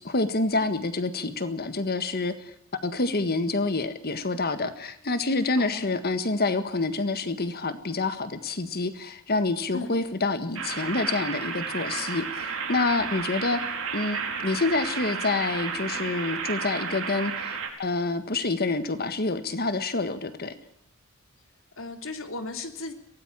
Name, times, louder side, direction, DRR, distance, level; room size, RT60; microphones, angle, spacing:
voice 1, 0.0-2.5 2.8-13.6 13.9-20.5, left 3 dB, 45° left, 10 dB, 1.6 m, -27 dB
voice 2, 5.5-5.9 9.7-9.9 21.8-22.9, left 3 dB, 65° left, 6 dB, 3.2 m, -36 dB
sound 1, 10.6-17.7, right 5 dB, 70° right, 4.9 m, -32 dB
23.5 x 18.5 x 7.5 m, 0.75 s
head